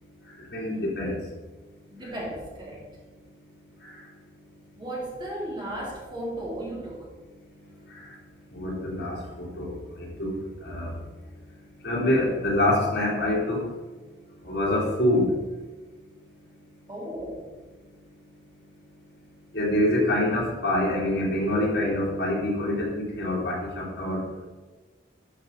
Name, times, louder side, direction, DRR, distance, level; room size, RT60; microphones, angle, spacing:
voice 1, 0.5-1.2 3.8-3.9 7.9-8.1 8.5-10.9 11.8-13.6 14.4-15.3 19.5-24.2, left 1 dB, 65° left, -5 dB, 3.1 m, -26 dB
voice 2, 1.9-2.8 4.8-7.1 16.9-17.5, right 1 dB, 25° right, -4 dB, 2.6 m, -35 dB
12.0 x 5.2 x 4.2 m, 1.3 s
head